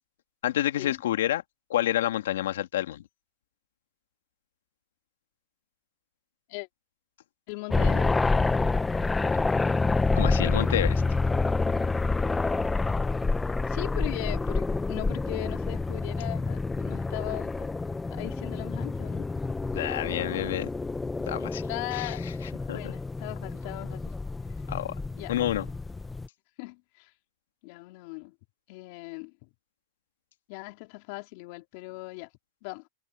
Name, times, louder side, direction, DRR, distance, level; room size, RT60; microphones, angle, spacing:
voice 1, 0.4-1.4 1.7-3.0 10.1-11.0 19.7-20.7 21.3-21.6 21.9-22.3 22.7-22.9 24.7-25.0 25.3-25.7, left 12 dB, 80° left, 2.2 m, -28 dB
voice 2, 7.5-8.3 13.7-17.7 18.1-19.2 21.7-22.2 22.7-24.0 25.2-25.4 26.6-27.1 27.6-28.3 28.7-29.5 30.5-32.3 32.6-32.9, left 27 dB, 50° left, 3.8 m, -38 dB
sound 1, 7.7-26.3, left 3 dB, 10° left, 0.6 m, -28 dB
supercardioid pair, 140°, 0 cm